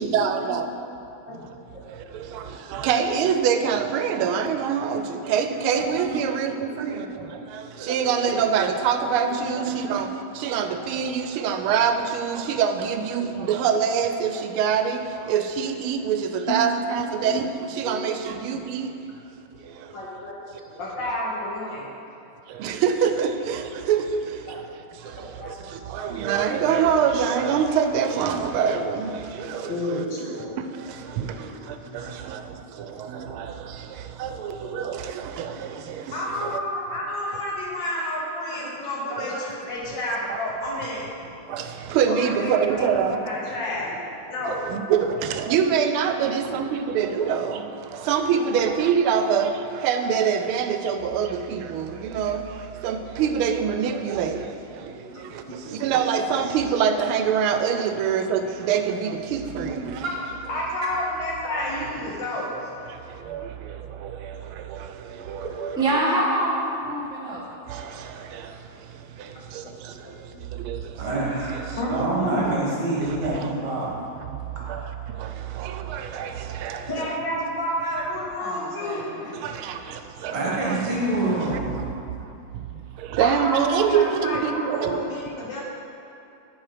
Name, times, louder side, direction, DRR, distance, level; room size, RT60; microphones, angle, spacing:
voice 1, 0.0-0.7 2.3-2.4 2.7-7.1 7.8-10.1 10.4-15.0 15.3-17.4 17.8-18.9 22.6-24.2 25.9-29.1 29.4-30.0 31.2-31.3 32.3-32.4 33.1-33.5 34.2-35.5 36.4-36.6 40.3-40.4 41.5-41.6 41.9-43.2 44.5-47.6 48.1-49.5 49.8-52.4 52.8-54.4 55.8-60.0 63.3-63.4 65.3-66.0 67.7-67.8 70.7-70.8 75.6-76.3 76.6-77.1 79.4-79.8 80.2-80.9 83.1-85.0, right 7 dB, 90° right, 7 dB, 1.5 m, -24 dB
voice 2, 16.5-17.3 17.9-18.0 19.9-21.9 24.5-24.6 25.2-25.5 29.7-30.4 31.1-31.5 35.5-35.6 36.1-41.0 42.1-44.0 44.3-44.6 54.9-55.2 55.6-55.7 59.6-59.9 60.5-62.5 65.4-65.6 71.8-72.6 76.9-79.1 83.2-85.6, left 1 dB, 65° left, -5 dB, 2.0 m, -30 dB
voice 3, 31.2-32.1 38.6-38.7 39.1-39.4 41.8-41.9 60.0-60.1 65.5-65.6 68.3-68.5 69.8-70.2 71.0-71.6 71.9-73.9 74.6-74.7 80.3-81.8, right 2 dB, 55° right, -4 dB, 2.0 m, -28 dB
voice 4, 65.7-67.4 78.4-79.3, right 1 dB, 5° right, -5 dB, 0.8 m, -26 dB
10.5 x 4.5 x 5.0 m, 2.8 s
omnidirectional pair, 2.3 m